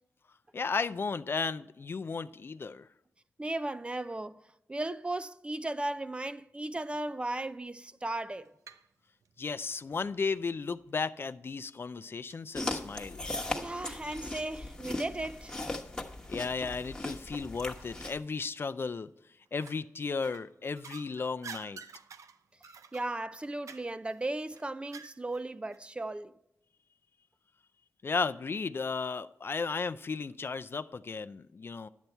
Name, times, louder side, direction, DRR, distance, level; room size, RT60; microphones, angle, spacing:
voice 1, 0.5-2.9 9.4-13.2 16.3-19.1 19.5-21.8 28.0-31.9, left 4 dB, 45° left, 0.4 m, -34 dB
voice 2, 3.4-4.4 4.7-8.5 13.5-15.6 22.9-26.3, right 2 dB, 20° right, 0.4 m, -36 dB
sound 1, 8.1-8.9 9.2-10.3 11.0-11.1 11.6-11.7 12.3-12.4 12.8-12.9 14.1-14.4 14.9-17.1 17.5-17.6 18.4-18.9 19.5-19.9 20.2-25.5 25.7-25.8, right 6 dB, 90° right, 0.5 m, -51 dB
sound 2, 12.5-18.2, left 2 dB, 15° left, 1.2 m, -38 dB
10.5 x 8.2 x 4.4 m
wide cardioid pair, 95°, 5 cm